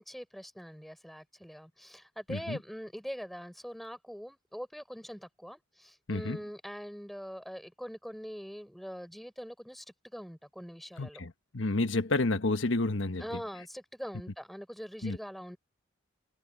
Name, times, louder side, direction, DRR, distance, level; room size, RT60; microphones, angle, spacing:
voice 1, 0.0-9.8 10.1-11.2 13.2-15.6, equal, ahead, 4.5 m, -43 dB
voice 2, 11.0-13.2 15.0-15.2, left 2 dB, 75° left, 1.2 m, -30 dB
head